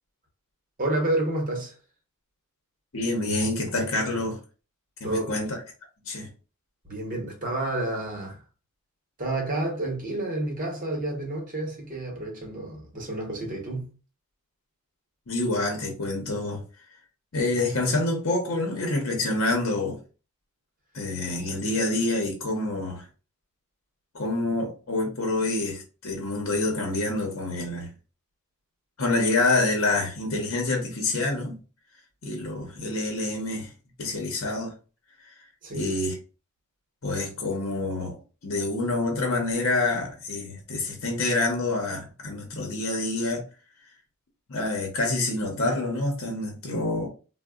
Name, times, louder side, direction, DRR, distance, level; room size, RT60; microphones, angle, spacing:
voice 1, 0.8-1.7 5.0-5.5 6.8-8.4 9.2-13.9 35.6-35.9, right 2 dB, 35° right, 0.9 m, -30 dB
voice 2, 2.9-4.4 5.0-5.6 6.0-6.3 15.3-16.6 17.3-20.0 20.9-23.0 24.1-27.9 29.0-31.6 32.2-33.7 34.0-34.7 35.7-36.2 37.0-38.1 38.4-43.4 44.5-47.1, left 2 dB, 60° left, 0.8 m, -27 dB
3.9 x 2.1 x 2.3 m
head